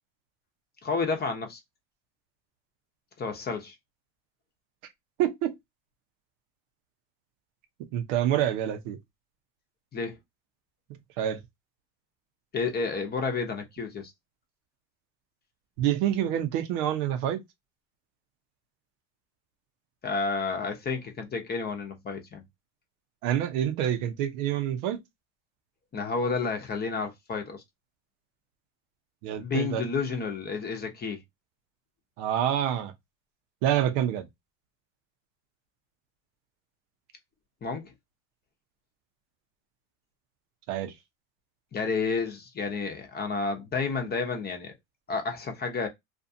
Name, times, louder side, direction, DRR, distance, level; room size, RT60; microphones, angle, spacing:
voice 1, 0.8-1.6 3.2-3.7 9.9-10.2 12.5-14.1 20.0-22.4 25.9-27.6 29.4-31.2 37.6-37.9 41.7-44.7 45.1-45.9, left 4 dB, 25° left, 0.8 m, -30 dB
voice 2, 5.2-5.5 7.9-9.0 10.9-11.4 15.8-17.4 23.2-25.0 29.2-29.8 32.2-32.9 33.6-34.3 40.7-40.9, right 11 dB, 75° right, 0.8 m, -27 dB
2.6 x 2.3 x 2.6 m
supercardioid pair, 105°, 39 cm